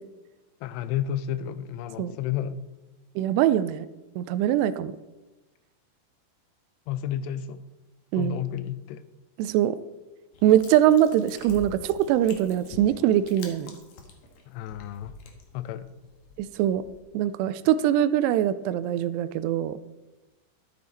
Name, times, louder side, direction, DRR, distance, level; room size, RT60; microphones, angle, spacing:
voice 1, 0.6-2.6 6.9-7.6 8.2-9.0 14.5-15.2 15.5-15.9, left 10 dB, 90° left, 13 dB, 2.8 m, -31 dB
voice 2, 3.2-3.9 4.2-4.9 8.1-8.4 9.4-9.8 10.4-13.8 16.4-16.8 17.1-19.8, right 11 dB, 85° right, 14 dB, 2.6 m, -22 dB
sound 1, 10.3-17.0, left 4 dB, 60° left, 2.1 m, -46 dB
12.5 x 8.5 x 4.1 m, 1.1 s
omnidirectional pair, 4.8 m